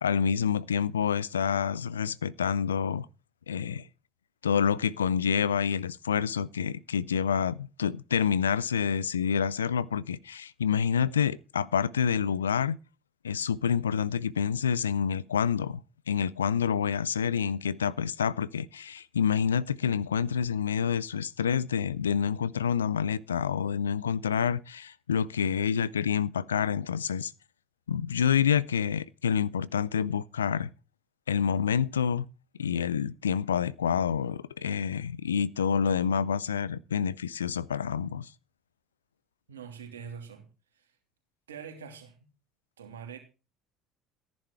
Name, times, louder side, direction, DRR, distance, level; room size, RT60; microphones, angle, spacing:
voice 1, 0.0-3.1 3.5-3.9 4.4-12.8 13.2-15.8 16.1-27.3 27.9-30.7 31.3-32.3 32.6-38.3, left 7 dB, 85° left, 0.5 m, -28 dB
voice 2, 39.5-40.5 40.7-40.9 41.5-42.3 42.8-43.2, right 7 dB, 80° right, 2.9 m, -44 dB
14.0 x 10.5 x 4.6 m
figure-of-eight pair, 60°, 0 cm